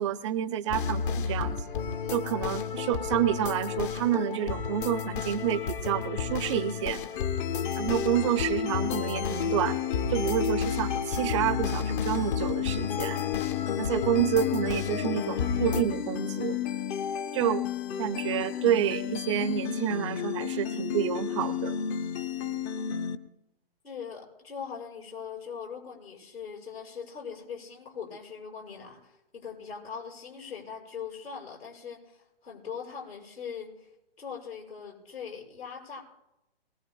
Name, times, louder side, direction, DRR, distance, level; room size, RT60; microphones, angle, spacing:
voice 1, 0.0-1.6 2.1-7.0 7.8-9.8 10.1-13.2 13.8-16.6 17.3-17.7 18.0-21.8, right 10 dB, 30° right, 13 dB, 0.5 m, -29 dB
sound 1, 0.7-15.8, left 7 dB, 55° left, 1.3 m, -32 dB
sound 2, 7.2-23.2, left 9 dB, 20° left, 0.5 m, -32 dB
voice 2, 23.8-33.9 34.2-36.0, left 6 dB, 80° left, 0 dB, 6.5 m, -41 dB
22.5 x 19.5 x 2.3 m, 0.93 s
hypercardioid pair, 125°, 30 cm